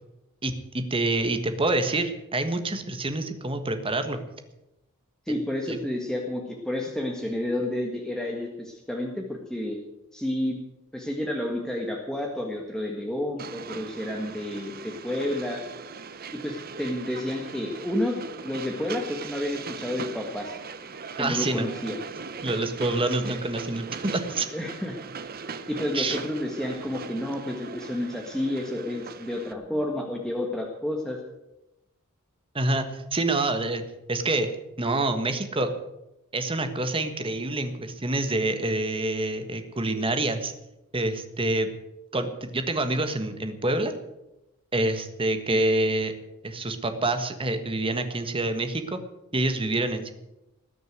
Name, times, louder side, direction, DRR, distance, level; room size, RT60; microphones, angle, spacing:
voice 1, 0.4-4.2 5.7-5.8 21.2-21.7 22.4-24.5 25.9-26.2 32.5-33.8 34.1-34.5 34.8-35.7 36.3-40.5 40.9-41.7 42.1-43.9 44.7-46.1 46.4-49.0 49.3-50.1, right 2 dB, 25° right, 8 dB, 1.5 m, -27 dB
voice 2, 5.3-9.8 10.1-10.6 10.9-15.6 16.3-20.6 21.1-22.0 24.5-25.0 25.7-31.2 45.5-45.6, left 1 dB, 5° left, 0 dB, 1.6 m, -30 dB
Train, 13.4-29.5, right 5 dB, 45° right, 0.9 m, -39 dB
19.5 x 6.8 x 9.3 m, 0.93 s
head